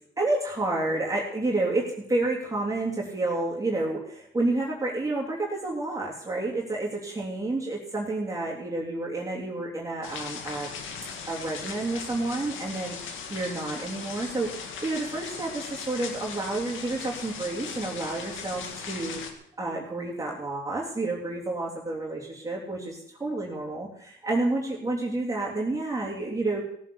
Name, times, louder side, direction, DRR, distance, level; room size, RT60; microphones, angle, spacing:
voice 1, 0.2-10.7 11.3-13.0 13.3-26.6, right 2 dB, 15° right, -4 dB, 3.0 m, -30 dB
sound 1, 10.0-19.3, left 6 dB, 80° left, 2.0 m, -38 dB
17.0 x 7.5 x 7.0 m, 0.73 s
cardioid pair, 90°, 20 cm